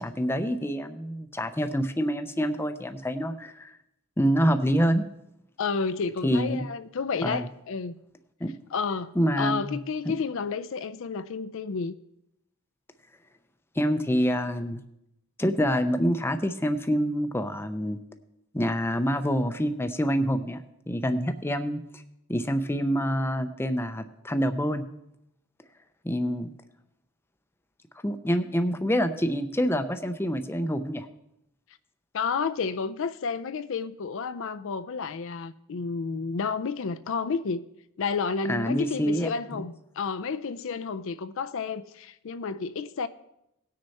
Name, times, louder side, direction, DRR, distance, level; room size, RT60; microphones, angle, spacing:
voice 1, 0.0-3.7 4.2-5.0 6.2-6.7 7.2-7.5 8.4-8.5 9.2-9.8 10.1-10.2 13.8-14.8 15.4-18.0 18.5-20.6 20.9-22.0 22.3-24.8 26.0-26.5 28.0-31.1 38.5-39.6, equal, 10° left, 0.5 m, -26 dB
voice 2, 5.6-8.0 8.7-11.9 32.1-37.6 38.0-43.1, left 5 dB, 60° left, 0.4 m, -31 dB
18.0 x 6.4 x 4.2 m
head